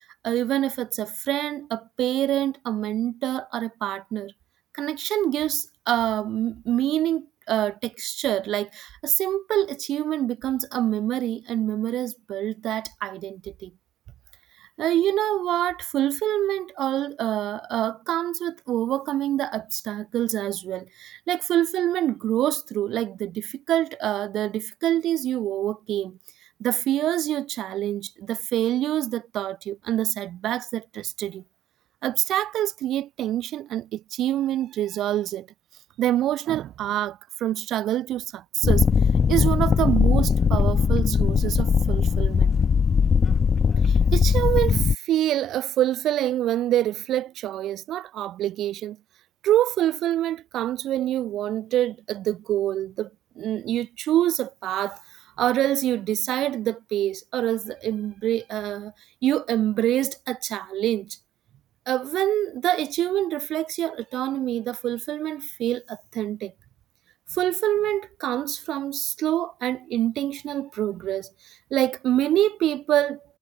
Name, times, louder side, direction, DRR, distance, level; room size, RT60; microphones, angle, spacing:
voice 1, 0.2-4.3 4.7-13.7 14.8-26.2 26.6-31.4 32.0-35.5 36.0-38.8 39.3-42.5 43.9-49.0 49.4-53.1 53.4-55.0 55.4-58.9 59.2-61.2 61.9-66.5 67.3-73.2, right 13 dB, 80° right, 1.2 m, -26 dB
sound 1, 38.6-45.0, left 6 dB, 45° left, 0.8 m, -20 dB
cardioid pair, 90°, 0 cm